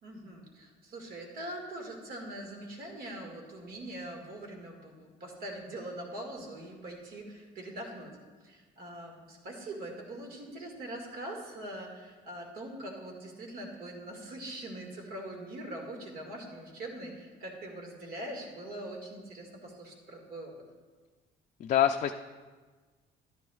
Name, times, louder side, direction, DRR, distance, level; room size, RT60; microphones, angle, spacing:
voice 1, 0.0-8.1 8.4-20.5, right 1 dB, 60° right, 1 dB, 2.0 m, -42 dB
voice 2, 21.6-22.1, left 10 dB, 45° left, 5 dB, 0.4 m, -25 dB
11.5 x 10.0 x 2.4 m, 1.4 s
cardioid pair, 110°, 17 cm